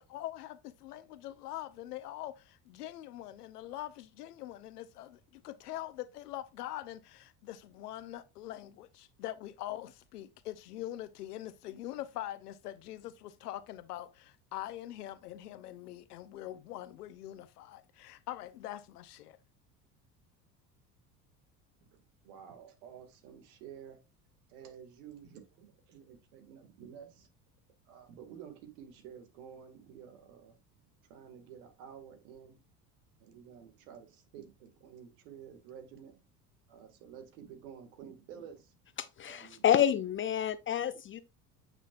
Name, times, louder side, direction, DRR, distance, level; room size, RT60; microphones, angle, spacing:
voice 1, 0.0-19.4, left 13 dB, 75° left, 0.9 m, -43 dB
voice 2, 21.8-24.0 24.5-27.3 27.9-30.6 30.9-32.6 33.2-36.2 36.7-38.8 39.3-40.0, right 8 dB, 65° right, 2.2 m, -51 dB
voice 3, 39.0-41.2, left 10 dB, 25° left, 0.5 m, -29 dB
8.8 x 6.3 x 2.5 m
hypercardioid pair, 70°, 47 cm